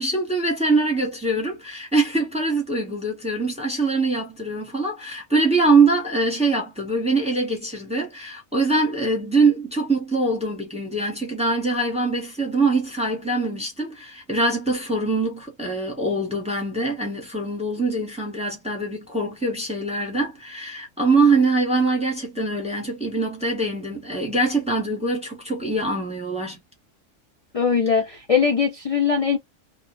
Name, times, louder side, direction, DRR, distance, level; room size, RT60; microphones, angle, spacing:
voice 1, 0.0-26.6, right 3 dB, 5° right, 1.0 m, -23 dB
voice 2, 27.5-29.4, left 6 dB, 40° left, 0.5 m, -21 dB
3.0 x 2.3 x 2.6 m
omnidirectional pair, 1.4 m